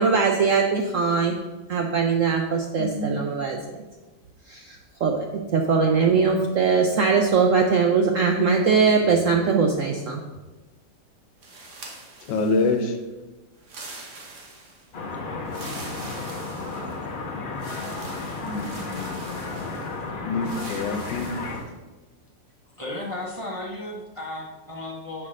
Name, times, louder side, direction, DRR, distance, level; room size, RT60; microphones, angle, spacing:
voice 1, 0.0-1.4 1.7-3.6 4.5-5.3 5.5-10.2, right 5 dB, 70° right, 2 dB, 0.8 m, -21 dB
voice 2, 2.8-3.2 6.1-6.4 12.3-13.0 18.4-19.4 20.2-21.3, left 3 dB, 75° left, 7 dB, 1.4 m, -27 dB
sound 1, 11.4-12.9 13.6-14.9 15.4-17.1 17.6-20.0 20.4-21.7, right 2 dB, 45° right, 1.3 m, -43 dB
sound 2, 14.9-21.6, left 3 dB, 50° left, 0.6 m, -33 dB
voice 3, 22.8-25.3, left 1 dB, 30° right, -3 dB, 0.6 m, -34 dB
5.8 x 4.4 x 6.4 m, 1.2 s
omnidirectional pair, 2.0 m